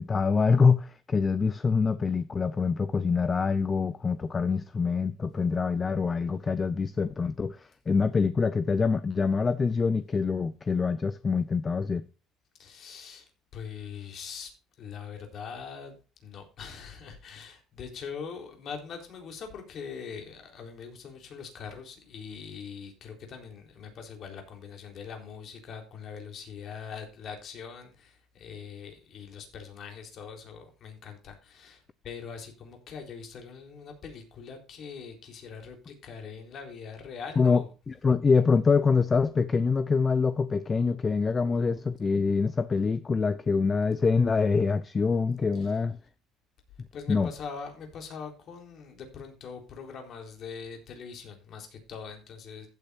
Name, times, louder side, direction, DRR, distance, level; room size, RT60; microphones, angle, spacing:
voice 1, 0.0-12.0 37.4-46.0 47.1-47.3, left 5 dB, 25° left, 0.6 m, -25 dB
voice 2, 12.6-37.7 45.5-45.7 46.9-52.7, left 6 dB, 50° left, 3.9 m, -42 dB
15.0 x 8.4 x 2.7 m
cardioid pair, 135°, 0 cm